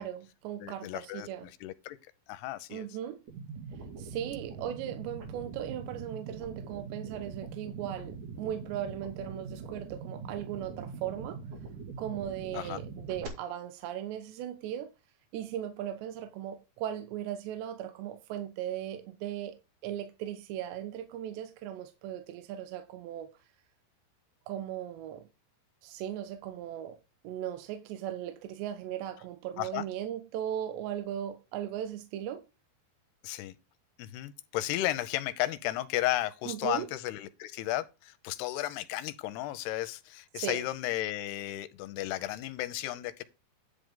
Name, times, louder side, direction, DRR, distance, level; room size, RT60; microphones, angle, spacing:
voice 1, 0.0-1.5 2.7-3.2 4.0-11.4 12.0-14.9 15.3-19.6 19.8-23.3 24.5-25.2 25.8-27.0 27.2-32.4 36.5-37.0 40.4-40.7, right 11 dB, 80° right, 3.2 m, -37 dB
voice 2, 0.6-2.0 2.3-2.9 12.5-12.8 29.6-29.8 33.2-33.6 34.0-43.2, left 15 dB, 80° left, 2.6 m, -34 dB
sound 1, 3.3-13.3, right 5 dB, 50° right, 3.2 m, -43 dB
10.5 x 6.5 x 3.7 m
omnidirectional pair, 5.0 m